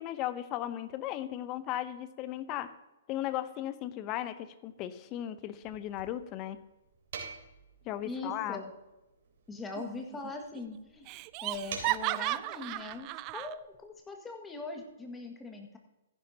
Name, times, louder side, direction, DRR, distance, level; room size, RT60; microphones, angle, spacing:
voice 1, 0.0-2.7 3.1-6.6 7.8-8.6, left 12 dB, 30° left, 13 dB, 0.8 m, -36 dB
sound 1, 5.6-12.4, right 5 dB, 60° right, 3.4 m, -48 dB
voice 2, 8.0-8.7 9.5-11.1 11.4-15.8, left 3 dB, 10° left, 3 dB, 1.8 m, -41 dB
Laughter, 9.8-10.3 10.6-10.7 11.1-13.5, right 18 dB, 35° right, 0.4 m, -35 dB
15.0 x 11.0 x 2.9 m, 1.0 s
hypercardioid pair, 135°, 0 cm